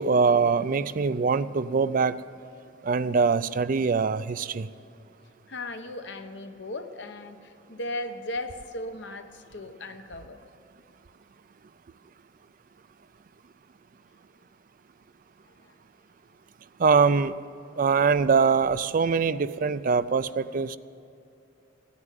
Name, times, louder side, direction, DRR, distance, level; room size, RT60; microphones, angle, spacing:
voice 1, 0.0-2.1 2.8-4.7 16.8-17.3 17.8-20.8, right 5 dB, 45° right, 15 dB, 0.4 m, -23 dB
voice 2, 5.5-10.4 15.6-15.7, left 1 dB, 60° left, 7 dB, 1.0 m, -37 dB
16.0 x 9.7 x 9.2 m, 2.7 s
head